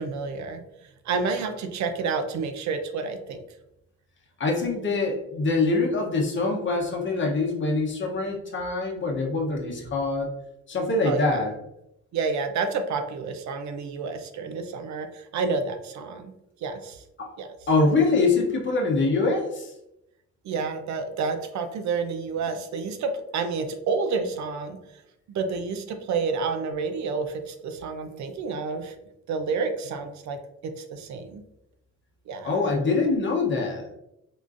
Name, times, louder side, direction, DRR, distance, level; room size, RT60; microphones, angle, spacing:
voice 1, 0.0-3.4 11.0-11.2 12.1-16.3 16.6-17.0 17.4-17.5 20.4-24.8 25.3-29.0 29.3-31.4 32.3-32.6, right 4 dB, 70° right, 7 dB, 0.5 m, -29 dB
voice 2, 4.4-10.3 10.7-11.5 17.2-17.3 17.7-19.7 32.4-33.9, left 3 dB, 40° left, 0 dB, 0.7 m, -24 dB
3.7 x 2.4 x 2.4 m, 0.84 s
cardioid pair, 90°, 30 cm